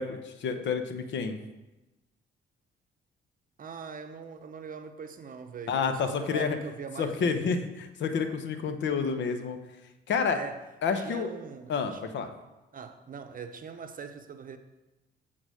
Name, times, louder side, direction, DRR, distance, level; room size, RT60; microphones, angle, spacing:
voice 1, 0.0-1.4 5.7-6.6 7.0-9.6 10.1-10.4 10.8-11.3 11.7-12.3, left 5 dB, 65° left, 0.8 m, -29 dB
voice 2, 3.6-7.5 10.3-10.6 11.0-12.0 12.7-14.6, right 6 dB, 45° right, 0.7 m, -42 dB
8.0 x 3.8 x 6.3 m
cardioid pair, 90°, 20 cm